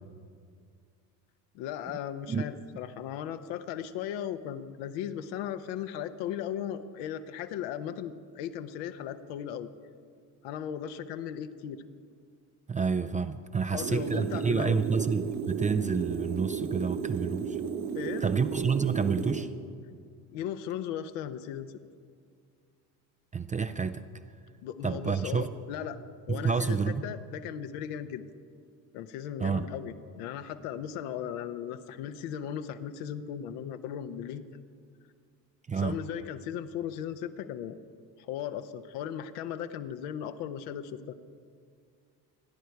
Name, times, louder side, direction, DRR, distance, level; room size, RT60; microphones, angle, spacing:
voice 1, 1.5-9.7 10.4-11.8 13.6-15.0 17.9-18.2 20.3-21.7 24.6-26.0 26.3-28.2 28.9-34.6 35.7-37.8 38.2-41.1, left 9 dB, 70° left, 9 dB, 1.0 m, -37 dB
voice 2, 12.7-17.6 18.2-19.5 23.3-24.0 24.8-25.5 26.3-27.1 29.4-29.7 35.7-36.0, right 5 dB, 15° right, 10 dB, 0.4 m, -29 dB
sound 1, 13.8-19.4, right 7 dB, 70° right, 2.0 m, -34 dB
26.5 x 10.5 x 4.6 m, 2.2 s
hypercardioid pair, 65°, 50 cm